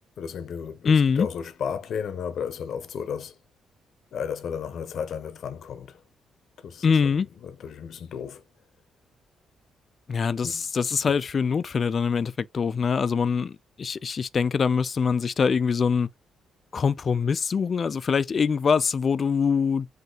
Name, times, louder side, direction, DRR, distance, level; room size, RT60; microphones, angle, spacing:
voice 1, 0.2-3.4 4.1-6.0 6.6-8.4 10.4-10.7 11.1-11.2, left 7 dB, 65° left, 0.7 m, -34 dB
voice 2, 0.8-1.3 6.8-7.3 10.1-13.5 13.8-16.1 16.7-19.9, left 6 dB, 45° left, 0.3 m, -23 dB
4.0 x 2.8 x 3.8 m
cardioid pair, 90°, 0 cm